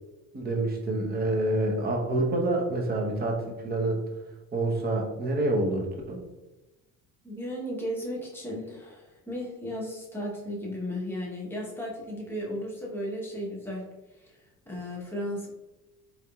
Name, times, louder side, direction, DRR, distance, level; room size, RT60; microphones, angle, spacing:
voice 1, 0.3-4.0 4.5-6.2, right 2 dB, 25° right, 1 dB, 0.8 m, -27 dB
voice 2, 7.2-13.9 14.2-14.4 14.7-15.5, equal, 5° left, -4 dB, 0.9 m, -35 dB
4.4 x 3.5 x 2.3 m, 1.1 s
cardioid pair, 140°, 36 cm